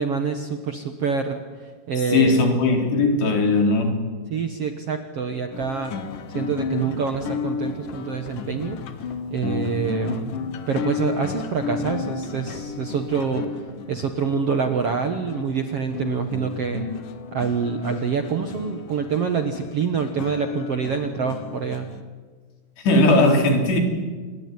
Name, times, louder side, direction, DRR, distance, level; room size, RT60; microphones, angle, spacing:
voice 1, 0.0-2.5 4.3-6.0 6.3-8.8 9.3-10.4 10.7-13.6 13.9-16.9 17.3-21.9, right 6 dB, 60° right, 6 dB, 1.6 m, -26 dB
voice 2, 2.1-4.1 22.8-23.8, left 2 dB, 85° left, 4 dB, 5.9 m, -18 dB
sound 1, 5.5-22.0, left 5 dB, 60° left, 2.8 m, -33 dB
27.5 x 21.5 x 9.5 m, 1.5 s
omnidirectional pair, 4.7 m